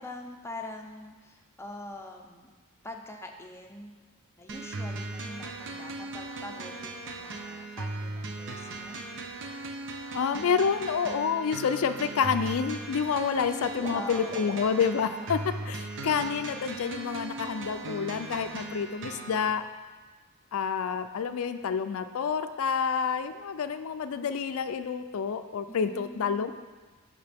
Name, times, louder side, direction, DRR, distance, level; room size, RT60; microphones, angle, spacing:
voice 1, 0.0-2.5 2.8-4.0 4.4-9.0 13.8-14.8 25.7-26.5, left 2 dB, 10° left, 1 dB, 0.7 m, -44 dB
sound 1, 4.5-19.5, right 2 dB, 60° right, 0.7 m, -38 dB
voice 2, 10.1-15.4 15.7-19.6 20.5-26.5, left 6 dB, 70° left, 9 dB, 0.4 m, -28 dB
Water / Liquid, 11.5-11.6 11.8-12.5 12.8-15.4 15.6-15.8 16.2-16.3, right 2 dB, 35° right, 1.1 m, -45 dB
12.0 x 5.1 x 3.5 m, 1.4 s
head